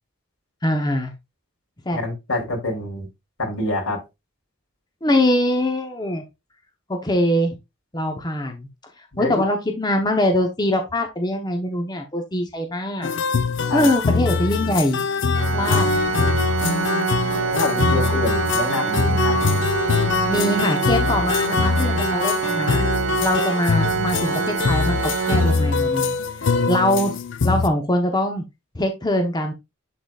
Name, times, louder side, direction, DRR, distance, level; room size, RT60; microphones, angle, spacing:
voice 1, 0.6-1.1 1.9-2.0 5.0-6.2 6.9-7.6 7.9-8.7 9.2-13.1 13.7-15.0 15.5-15.8 20.3-22.8 23.2-25.0 25.3-26.2 26.7-27.2 27.4-28.4 28.7-29.5, left 1 dB, 20° left, 4 dB, 0.8 m, -22 dB
voice 2, 1.9-3.1 3.4-4.0 9.1-9.4 13.7-13.9 15.7-15.8 17.5-19.4, left 1 dB, 85° left, 0 dB, 2.9 m, -26 dB
sound 1, 13.0-27.7, left 5 dB, 60° left, 0.5 m, -23 dB
Organ, 15.3-26.2, right 7 dB, 60° right, 0.4 m, -26 dB
10.5 x 3.9 x 2.3 m, 0.22 s
head